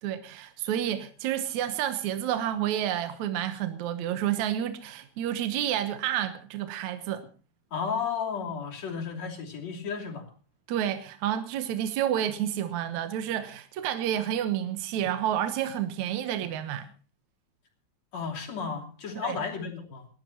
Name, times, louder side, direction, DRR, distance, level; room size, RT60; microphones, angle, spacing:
voice 1, 0.0-7.3 10.7-16.9 19.2-19.4, right 11 dB, 75° right, 2.3 m, -30 dB
voice 2, 7.7-10.3 18.1-20.1, left 6 dB, 60° left, 4.1 m, -33 dB
28.5 x 12.0 x 2.9 m
omnidirectional pair, 3.5 m